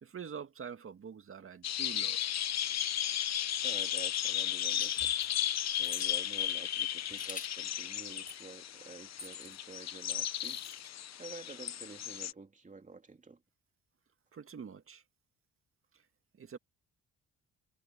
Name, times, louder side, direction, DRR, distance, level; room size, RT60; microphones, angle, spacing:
voice 1, 0.0-2.4 14.3-15.0 15.9-16.0 16.4-16.6, right 7 dB, 45° right, 2.2 m, -46 dB
sound 1, 1.6-12.3, left 11 dB, 60° left, 1.1 m, -34 dB
voice 2, 3.6-5.1 5.7-10.6 11.2-13.4, right 4 dB, 25° right, 3.1 m, -49 dB
sound 2, 4.8-5.3 5.8-6.1 7.1-7.6 8.3-8.5 9.2-9.6 10.4-10.9, left 4 dB, 25° left, 7.8 m, -49 dB
cardioid pair, 90°, 30 cm